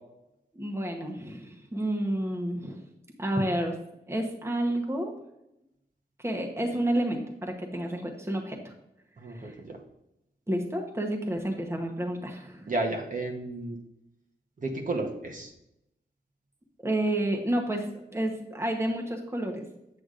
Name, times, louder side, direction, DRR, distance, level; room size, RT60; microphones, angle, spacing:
voice 1, 0.5-2.8 3.2-3.8 4.1-5.1 6.2-8.7 9.3-9.5 10.5-12.7 16.8-19.7, right 1 dB, 15° right, 1 dB, 0.9 m, -30 dB
voice 2, 9.2-9.8 12.7-13.8 14.6-15.5, right 2 dB, 45° right, 1 dB, 1.0 m, -32 dB
8.0 x 7.8 x 2.5 m, 0.84 s
wide cardioid pair, 125°, 18 cm